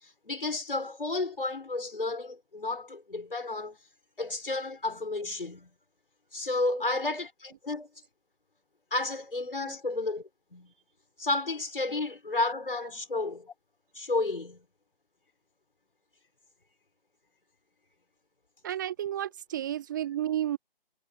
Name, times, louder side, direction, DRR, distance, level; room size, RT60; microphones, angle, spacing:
voice 1, 0.3-3.8 4.2-5.7 6.3-7.9 8.9-10.2 10.5-10.7 11.2-13.5 13.9-14.7, left 2 dB, 70° left, 5.8 m, -32 dB
voice 2, 18.6-20.6, right 11 dB, 20° right, 1.2 m, -32 dB
figure-of-eight pair, 145°, 29 cm